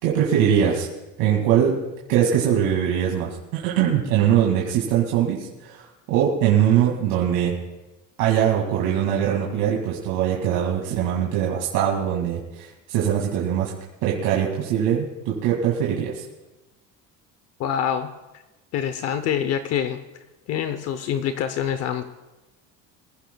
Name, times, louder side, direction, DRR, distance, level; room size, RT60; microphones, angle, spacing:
voice 1, 0.0-0.9 1.2-1.8 2.1-7.6 8.2-13.7 14.0-16.2, right 9 dB, 85° right, -2 dB, 2.2 m, -22 dB
voice 2, 17.6-18.1 18.7-20.0 20.5-22.0, left 9 dB, 45° left, 10 dB, 0.7 m, -25 dB
24.0 x 15.5 x 2.3 m, 1.1 s
cardioid pair, 175°, 34 cm